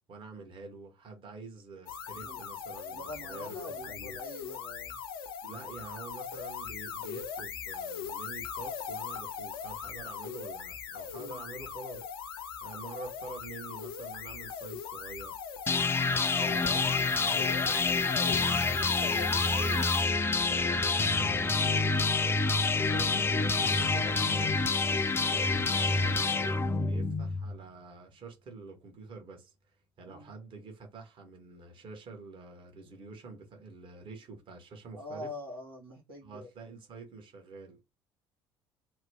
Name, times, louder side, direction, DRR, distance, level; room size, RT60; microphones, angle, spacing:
voice 1, 0.1-4.1 5.4-15.4 16.1-24.5 25.3-29.5 30.0-35.3 36.2-37.8, right 4 dB, 45° right, 1.2 m, -47 dB
sound 1, 1.9-20.1, left 7 dB, 75° left, 0.5 m, -40 dB
voice 2, 2.9-5.0 11.1-11.4 16.3-16.6 22.9-23.3 24.8-25.1 30.1-30.3 35.0-36.5, left 1 dB, 85° right, 1.1 m, -45 dB
sound 2, 15.7-27.6, left 3 dB, 20° left, 0.4 m, -27 dB
3.0 x 2.1 x 3.3 m
figure-of-eight pair, 55°, 12 cm